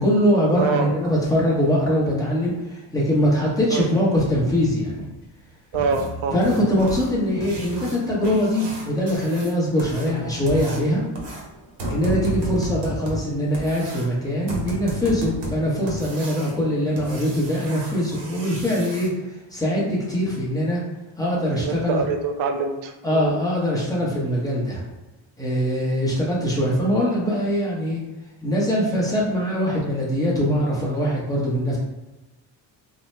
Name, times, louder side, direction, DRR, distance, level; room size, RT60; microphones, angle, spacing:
voice 1, 0.0-5.1 6.3-11.0 11.9-20.8 21.2-22.0 23.0-24.8 25.4-28.0 28.4-31.8, equal, 10° left, -6 dB, 0.8 m, -22 dB
voice 2, 0.6-1.1 3.7-3.9 5.7-6.4 21.5-23.4, right 4 dB, 90° right, 6 dB, 0.5 m, -25 dB
sound 1, 4.2-5.4 5.7-7.0 7.3-8.6 9.2-9.3 10.1-10.9, left 2 dB, 60° left, 0.6 m, -37 dB
sound 2, 5.9-19.1 21.4-21.5 21.9-22.0 22.5-22.6 23.1-23.2 23.6-23.8 24.2-24.3 24.7-24.8, right 1 dB, 65° right, 0.9 m, -34 dB
2.7 x 2.1 x 3.2 m, 1.0 s
cardioid pair, 130°, 46 cm